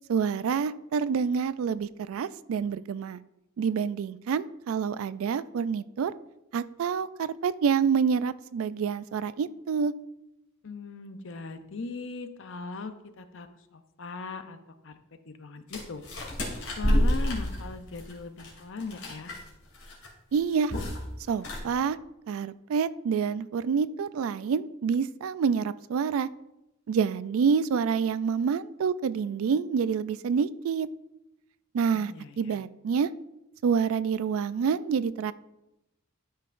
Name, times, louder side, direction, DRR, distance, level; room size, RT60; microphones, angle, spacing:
voice 1, 0.1-3.2 3.6-6.1 6.5-9.9 20.3-20.7 21.3-22.0 22.3-26.3 26.9-30.9 31.7-33.1 33.6-35.3, right 6 dB, 70° right, 16 dB, 0.3 m, -27 dB
voice 2, 10.6-14.6 14.8-14.9 15.3-16.0 16.8-19.3 31.9-32.6, left 3 dB, 60° left, 9 dB, 0.6 m, -39 dB
sound 1, 15.7-19.5 19.7-20.1 20.3-21.0 21.3-21.6, equal, 75° left, 2.6 m, -28 dB
12.5 x 5.7 x 2.5 m, 0.91 s
head